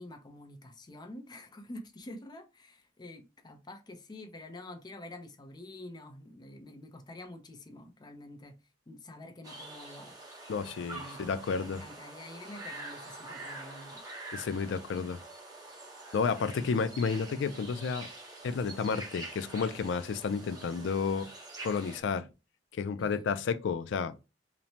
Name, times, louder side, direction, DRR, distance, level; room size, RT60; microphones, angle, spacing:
voice 1, 0.0-8.6 8.9-10.2 10.8-11.2 11.6-14.0 23.0-23.4, left 1 dB, 25° left, 0.5 m, -47 dB
sound 1, 9.4-22.0, right 2 dB, 20° right, 0.7 m, -46 dB
voice 2, 10.5-11.8 14.3-15.2 16.1-18.1 18.4-21.3 21.6-22.3 22.7-24.2, left 5 dB, 80° left, 0.3 m, -31 dB
3.0 x 2.1 x 2.6 m
head